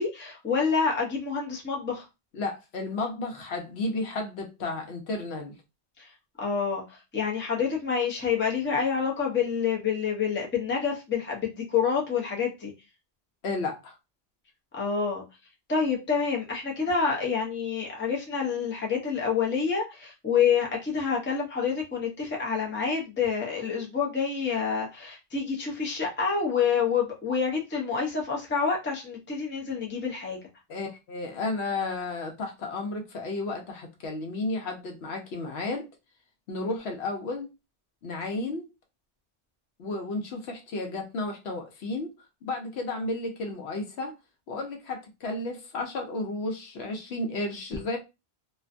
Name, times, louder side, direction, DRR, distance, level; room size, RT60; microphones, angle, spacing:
voice 1, 0.0-2.1 6.0-6.1 6.4-12.7 14.7-15.2 15.7-30.4, left 6 dB, 15° left, 0.4 m, -27 dB
voice 2, 2.3-5.5 13.4-13.9 30.7-35.9 36.5-37.5 38.0-38.7 39.8-42.1 42.4-44.1 44.5-48.0, left 2 dB, 75° left, 0.9 m, -33 dB
2.5 x 2.2 x 2.4 m
omnidirectional pair, 1.1 m